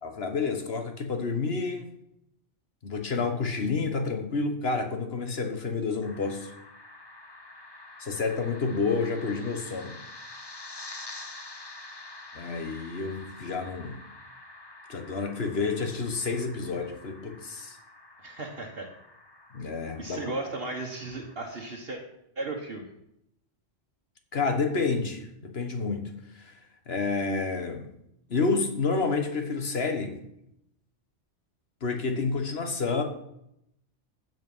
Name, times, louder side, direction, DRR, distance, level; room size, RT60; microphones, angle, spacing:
voice 1, 0.0-1.9 2.8-6.5 8.0-10.0 12.3-14.0 14.9-17.8 19.5-20.3 24.3-26.5 26.9-27.9 28.3-30.2 31.8-33.0, left 4 dB, 60° left, 5 dB, 1.5 m, -29 dB
sound 1, 6.0-21.3, left 2 dB, 25° left, 0.8 m, -47 dB
voice 2, 18.2-18.9 20.0-22.0 22.4-22.8, right 2 dB, 55° right, 0 dB, 1.5 m, -35 dB
15.0 x 5.4 x 5.5 m, 0.78 s
omnidirectional pair, 1.2 m